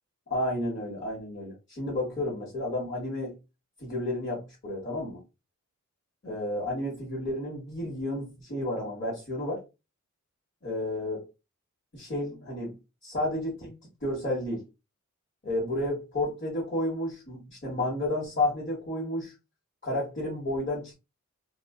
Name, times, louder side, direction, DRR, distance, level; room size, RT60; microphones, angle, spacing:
voice 1, 0.3-3.4 3.8-5.2 6.2-9.6 10.6-11.2 11.9-12.7 13.0-14.6 15.4-19.3 19.8-20.9, left 1 dB, 35° left, -8 dB, 1.2 m, -31 dB
2.4 x 2.3 x 2.3 m, 0.26 s
wide cardioid pair, 70°, 31 cm